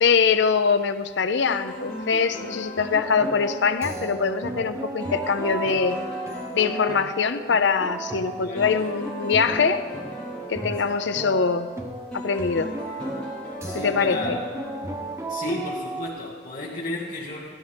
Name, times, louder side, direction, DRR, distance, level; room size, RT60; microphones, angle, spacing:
voice 1, 0.0-6.0 6.5-9.8 10.5-11.7 12.1-12.7 13.7-14.4, left 5 dB, 65° left, 11 dB, 0.6 m, -23 dB
sound 1, 1.4-15.7, equal, 5° left, 3.4 m, -37 dB
sound 2, 2.8-16.1, right 2 dB, 15° right, 0.6 m, -35 dB
voice 2, 8.2-8.7 13.6-14.4 15.3-17.6, left 2 dB, 45° left, -8 dB, 1.9 m, -33 dB
15.5 x 12.5 x 3.5 m, 1.5 s
head